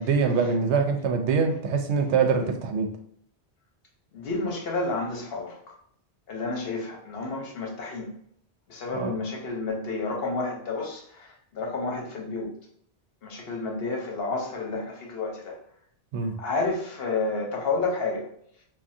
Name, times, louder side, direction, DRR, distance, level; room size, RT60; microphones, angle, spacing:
voice 1, 0.0-2.9 8.9-9.1 16.1-16.4, right 5 dB, 90° right, 6 dB, 0.9 m, -24 dB
voice 2, 4.1-5.6 6.3-8.1 8.7-12.5 13.2-15.6 16.4-18.3, left 3 dB, 65° left, 0 dB, 0.9 m, -30 dB
3.5 x 2.2 x 2.6 m, 0.66 s
omnidirectional pair, 1.1 m